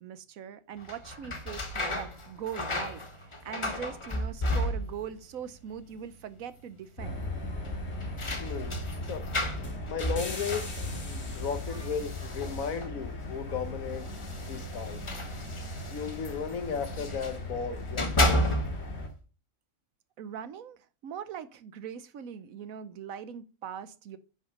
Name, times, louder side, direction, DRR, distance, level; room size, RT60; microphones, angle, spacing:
voice 1, 0.0-7.2 20.2-24.2, right 8 dB, 75° right, 1.2 m, -41 dB
sound 1, 0.8-5.2 5.5-6.1 6.4-6.5 7.6-13.0 13.9-17.4 17.8-19.0, left 1 dB, 25° left, 0.9 m, -33 dB
sound 2, 7.0-19.1, left 1 dB, 50° left, 2.2 m, -38 dB
voice 2, 8.4-8.7 9.1-9.2 9.9-10.7 11.1-14.1 14.4-15.0 15.9-18.6, left 6 dB, 75° left, 1.5 m, -35 dB
10.0 x 5.6 x 5.3 m
omnidirectional pair, 1.5 m